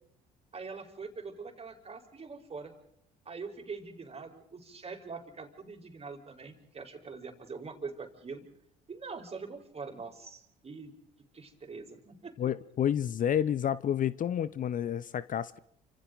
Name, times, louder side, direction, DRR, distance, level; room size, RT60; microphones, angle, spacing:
voice 1, 0.5-2.7 3.2-8.4 8.9-10.9 11.3-12.4, right 4 dB, 30° right, 4.6 m, -43 dB
voice 2, 12.4-15.6, left 9 dB, 40° left, 0.8 m, -30 dB
29.5 x 26.5 x 4.0 m
hypercardioid pair, 60°, 20 cm